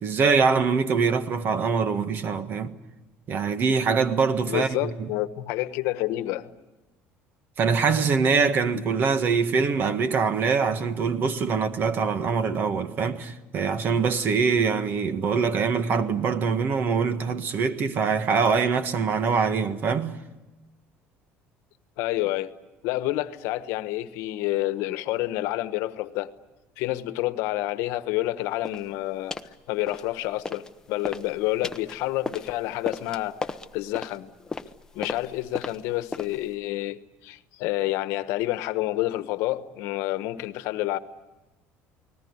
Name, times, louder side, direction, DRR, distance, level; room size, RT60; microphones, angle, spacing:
voice 1, 0.0-2.8 3.3-5.1 7.6-20.2, right 5 dB, 45° right, 1.6 m, -24 dB
voice 2, 4.5-6.5 22.0-22.5 22.8-26.3 26.8-29.3 29.7-33.4 33.7-34.3 34.9-41.0, left 16 dB, 80° left, 1.2 m, -28 dB
sound 1, 28.6-28.9 29.3-29.6 29.9-30.7 31.0-36.5, left 3 dB, 10° left, 0.9 m, -36 dB
29.0 x 20.0 x 9.7 m
cardioid pair, 140°, 5 cm